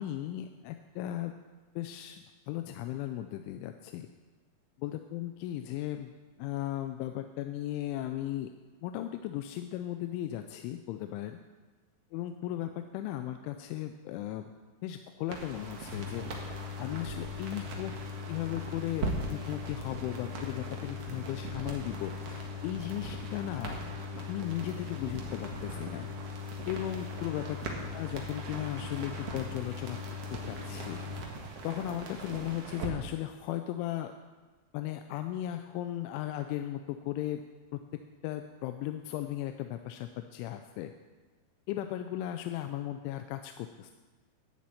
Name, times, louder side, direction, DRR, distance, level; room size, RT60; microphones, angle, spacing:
voice 1, 0.0-1.3 1.8-4.1 4.8-6.1 6.4-8.5 8.8-11.4 12.1-14.5 14.8-17.9 18.3-23.8 24.2-26.1 26.7-27.6 27.9-30.0 30.3-31.0 31.6-34.1 34.7-37.4 37.7-37.8 38.2-40.9 41.7-43.9, left 13 dB, 85° left, 7 dB, 3.0 m, -36 dB
sound 1, 15.3-32.9, right 3 dB, 75° right, 1.4 m, -41 dB
sound 2, 15.9-31.2, left 8 dB, 30° left, 3.4 m, -41 dB
12.0 x 7.5 x 8.5 m, 1.3 s
omnidirectional pair, 5.4 m